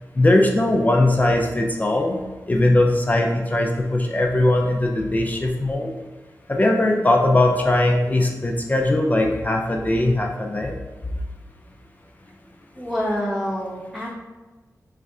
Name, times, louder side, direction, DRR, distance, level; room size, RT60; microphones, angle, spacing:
voice 1, 0.2-2.2 2.5-5.9 6.5-10.7, left 1 dB, 25° left, 1 dB, 0.4 m, -20 dB
voice 2, 12.7-14.1, equal, 5° right, -7 dB, 1.2 m, -27 dB
3.3 x 2.4 x 4.1 m, 1.2 s
wide cardioid pair, 95°, 6 cm